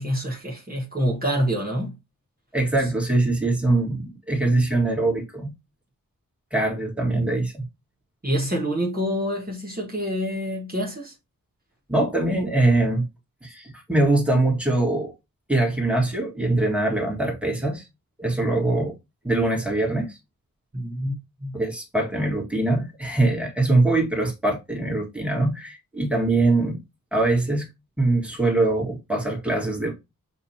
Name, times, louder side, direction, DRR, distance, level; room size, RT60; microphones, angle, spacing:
voice 1, 0.0-1.9 8.2-11.1 20.7-21.6, equal, 25° right, 1.3 m, -27 dB
voice 2, 2.5-5.5 6.5-7.7 11.9-13.1 13.4-15.1 15.5-17.9 18.2-19.0 19.2-20.2 21.5-26.8 27.1-27.7 28.0-29.9, right 2 dB, 5° right, 1.7 m, -23 dB
6.9 x 2.6 x 2.8 m
wide cardioid pair, 75°, 34 cm